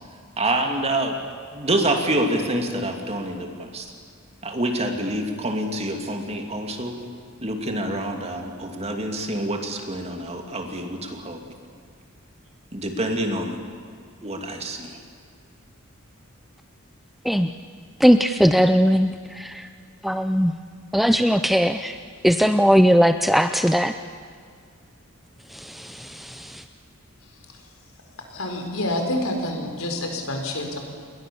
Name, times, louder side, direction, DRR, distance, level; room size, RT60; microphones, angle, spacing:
voice 1, 0.4-1.2 1.5-3.9 4.4-7.0 7.4-11.4 12.7-13.6 14.2-15.0, right 1 dB, 30° right, 4 dB, 2.7 m, -26 dB
voice 2, 18.0-19.5 20.0-20.5 20.9-21.9 22.2-23.9, equal, ahead, 9 dB, 0.5 m, -18 dB
voice 3, 28.3-30.8, left 1 dB, 70° left, 3 dB, 4.6 m, -28 dB
29.0 x 22.0 x 7.1 m, 2.2 s
head